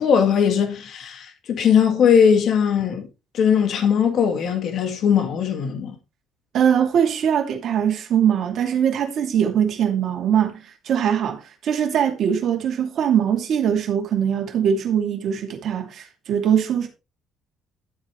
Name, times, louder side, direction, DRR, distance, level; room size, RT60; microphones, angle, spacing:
voice 1, 0.0-3.1 3.3-6.0, left 7 dB, 45° left, 2.0 m, -19 dB
voice 2, 6.5-10.6 10.9-16.9, right 8 dB, 45° right, 2.5 m, -21 dB
12.0 x 8.3 x 3.2 m
cardioid pair, 165°, 0 cm